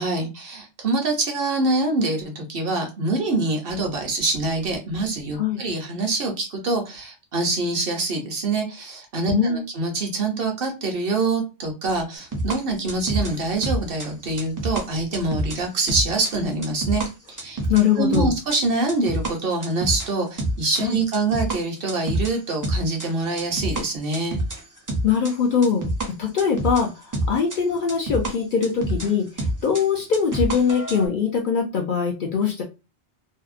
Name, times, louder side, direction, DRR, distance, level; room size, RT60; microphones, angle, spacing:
voice 1, 0.0-17.0 17.4-17.6 18.0-24.4, right 3 dB, 60° right, 3 dB, 0.8 m, -25 dB
voice 2, 9.3-9.7 17.7-18.3 20.8-21.0 25.0-25.9 26.2-32.6, left 6 dB, 60° left, 1 dB, 0.6 m, -22 dB
sound 1, 12.3-17.1 17.4-20.1 20.4-21.6 21.9-23.8 24.1-26.1 26.4-29.1 29.4-31.1, right 1 dB, 25° right, 0.4 m, -27 dB
2.7 x 2.0 x 2.4 m, 0.27 s
omnidirectional pair, 1.2 m